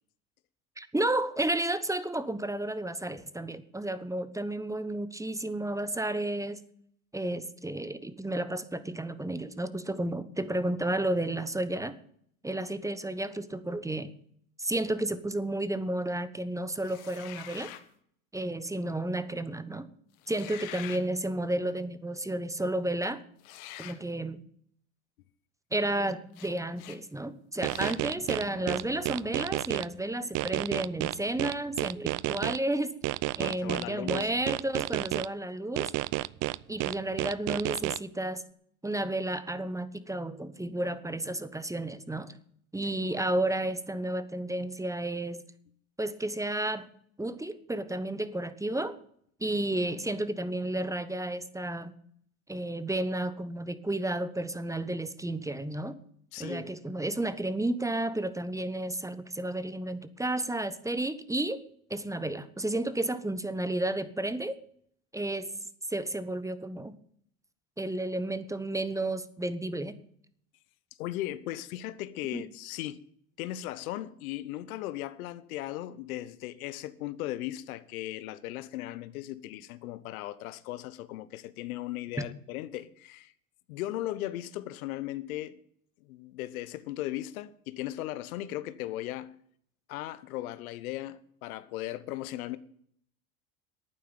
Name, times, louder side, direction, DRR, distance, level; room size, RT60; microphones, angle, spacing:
voice 1, 0.8-6.6 7.1-11.9 12.4-14.1 14.6-17.7 18.3-19.9 20.3-23.2 23.8-24.4 25.7-32.9 33.4-35.9 36.7-38.4 38.8-42.3 42.7-45.4 46.0-46.9 47.2-49.0 49.4-51.9 52.5-56.0 56.4-61.6 61.9-64.6 65.1-65.5 65.9-66.9 67.8-70.0 72.3-72.5 82.2-82.3, right 1 dB, 5° right, 1.1 m, -32 dB
sound 1, 16.8-17.9 20.2-21.1 23.4-24.0 26.3-26.5 26.8-27.0 27.6-28.0, left 13 dB, 60° left, 1.5 m, -45 dB
sound 2, 27.6-29.8 30.3-32.6 33.0-35.3 35.8-38.0, right 19 dB, 45° right, 0.5 m, -30 dB
Boom, 27.7-31.0, left 3 dB, 25° left, 3.3 m, -53 dB
voice 2, 33.4-34.3 56.3-56.7 71.0-73.0 73.4-83.3 83.7-85.6 86.0-89.4 89.9-92.6, left 14 dB, 75° left, 1.0 m, -37 dB
11.5 x 9.3 x 8.9 m
hypercardioid pair, 85°, 43 cm